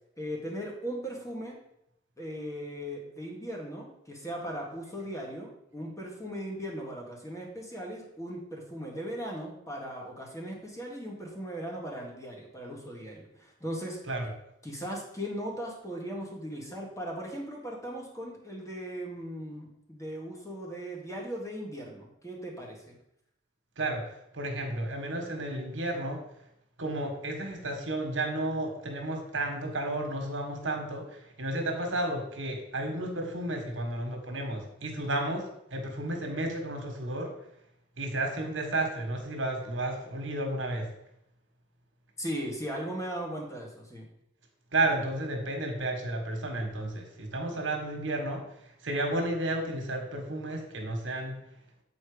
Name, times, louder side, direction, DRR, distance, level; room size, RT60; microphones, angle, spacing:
voice 1, 0.2-1.6 2.2-14.0 14.6-22.9 42.2-44.1, equal, 15° left, -1 dB, 1.6 m, -38 dB
voice 2, 24.3-26.2 26.8-37.3 38.0-40.9 44.7-48.4 48.8-51.4, right 1 dB, 75° right, 3 dB, 1.6 m, -32 dB
8.3 x 4.3 x 5.0 m, 0.79 s
head